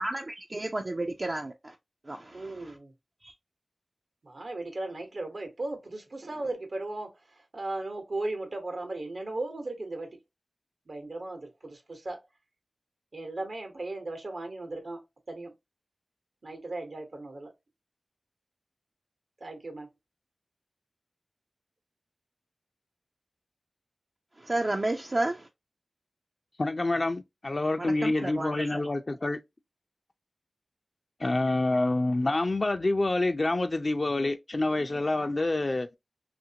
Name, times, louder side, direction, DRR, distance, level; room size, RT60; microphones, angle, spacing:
voice 1, 0.0-1.7 2.1-2.8 3.2-3.3 24.4-25.5 27.8-28.8, right 2 dB, 50° right, 0.4 m, -32 dB
voice 2, 2.3-2.9 4.2-10.2 10.9-12.2 13.1-15.0 15.3-15.5 16.4-17.5 19.4-19.9, right 2 dB, 75° right, 0.9 m, -37 dB
voice 3, 26.6-29.4 31.2-35.9, left 2 dB, 50° left, 0.4 m, -27 dB
2.8 x 2.5 x 2.7 m
wide cardioid pair, 45°, 0 cm